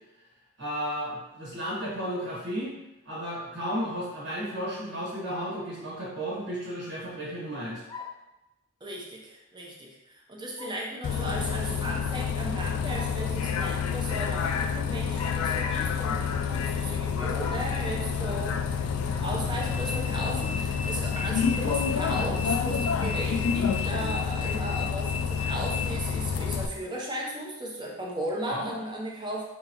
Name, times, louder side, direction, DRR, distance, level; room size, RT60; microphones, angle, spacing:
voice 1, 0.6-2.7 3.0-7.8 28.5-28.7, equal, 60° right, -6 dB, 1.4 m, -33 dB
sound 1, 7.9-8.3 10.6-10.9 12.7-13.3 15.1-15.9 17.4-17.8 19.1-19.3 19.9-20.0 21.7-22.0, left 5 dB, 20° left, 0.5 m, -42 dB
voice 2, 8.8-18.6 19.2-29.4, right 1 dB, 20° right, -2 dB, 0.8 m, -36 dB
Bus, 11.0-26.7, left 6 dB, 85° left, 0.4 m, -28 dB
5.0 x 3.5 x 2.9 m, 0.95 s
head